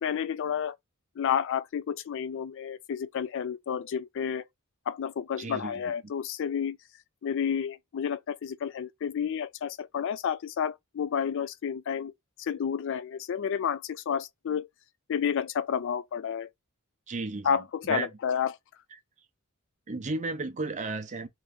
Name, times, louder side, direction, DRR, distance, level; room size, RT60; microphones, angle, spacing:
voice 1, 0.0-0.8 1.2-4.5 4.9-6.8 7.2-12.1 12.4-14.7 15.1-16.5 17.4-18.6, left 7 dB, 60° left, 0.4 m, -30 dB
voice 2, 5.4-5.8 17.1-17.5 17.8-18.1 19.9-21.3, right 3 dB, 35° right, 0.5 m, -33 dB
3.0 x 2.5 x 3.4 m
head